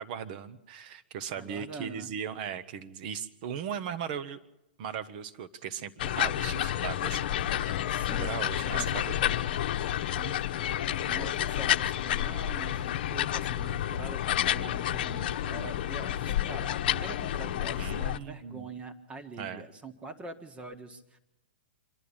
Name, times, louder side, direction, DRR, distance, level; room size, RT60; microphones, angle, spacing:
voice 1, 0.0-4.4 4.8-7.3 7.6-9.4 17.8-18.6 19.4-19.6, right 8 dB, 50° right, 12 dB, 1.2 m, -38 dB
voice 2, 1.4-2.1 7.9-8.4 8.7-9.0 10.1-21.2, right 3 dB, 20° right, 7 dB, 1.8 m, -44 dB
sound 1, 6.0-18.2, left 11 dB, 60° left, 1.0 m, -30 dB
25.5 x 11.5 x 8.8 m, 0.93 s
hypercardioid pair, 125°, 6 cm